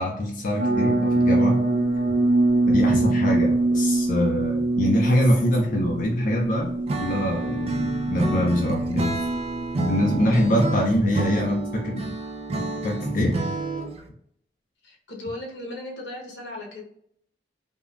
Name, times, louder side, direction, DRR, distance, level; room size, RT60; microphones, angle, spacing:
voice 1, 0.0-1.6 2.7-6.7 7.0-9.2 9.8-12.1 12.5-13.4, left 1 dB, 50° left, -1 dB, 0.4 m, -24 dB
sound 1, 0.6-11.5, right 2 dB, 85° right, 0.7 m, -24 dB
Acoustic guitar / Strum, 6.9-14.1, right 3 dB, 35° right, 0.4 m, -29 dB
voice 2, 11.2-11.6 14.8-16.8, left 1 dB, 80° left, -2 dB, 0.8 m, -37 dB
3.5 x 2.1 x 2.2 m, 0.69 s
head